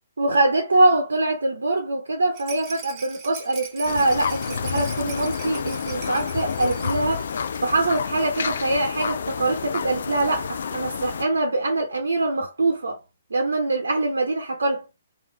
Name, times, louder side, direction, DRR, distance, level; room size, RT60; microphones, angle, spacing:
voice 1, 0.2-7.3 7.6-13.0 13.3-14.8, right 2 dB, 70° right, 1.0 m, -23 dB
Rattle, 2.3-8.0 8.3-8.4 8.7-8.8, right 5 dB, 25° right, 1.5 m, -41 dB
sound 1, 3.8-11.2, left 6 dB, 55° left, 0.4 m, -29 dB
3.7 x 2.8 x 4.8 m
figure-of-eight pair, 125°, 0 cm